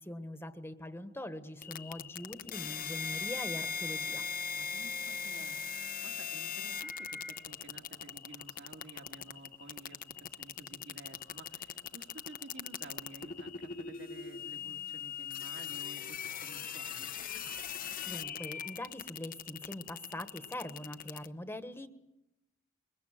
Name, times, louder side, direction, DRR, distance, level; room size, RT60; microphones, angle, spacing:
voice 1, 0.0-4.2 17.8-21.9, left 1 dB, 10° left, 8 dB, 1.4 m, -43 dB
sound 1, 1.6-21.3, left 6 dB, 45° left, 0.9 m, -40 dB
voice 2, 4.5-17.1, right 2 dB, 60° right, 2 dB, 2.7 m, -53 dB
26.0 x 23.0 x 7.7 m, 0.87 s
head